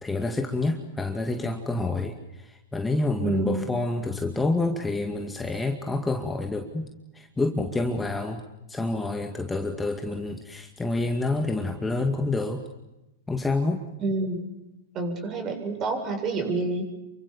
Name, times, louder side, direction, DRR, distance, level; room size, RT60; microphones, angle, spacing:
voice 1, 0.0-2.2 2.4-6.9 7.1-8.4 8.7-12.6 13.3-13.8, left 2 dB, 10° left, 4 dB, 2.3 m, -28 dB
voice 2, 3.2-3.7 14.0-14.5 14.9-16.9, right 3 dB, 30° right, 5 dB, 7.7 m, -28 dB
28.5 x 24.5 x 7.2 m, 0.96 s
hypercardioid pair, 110°, 0 cm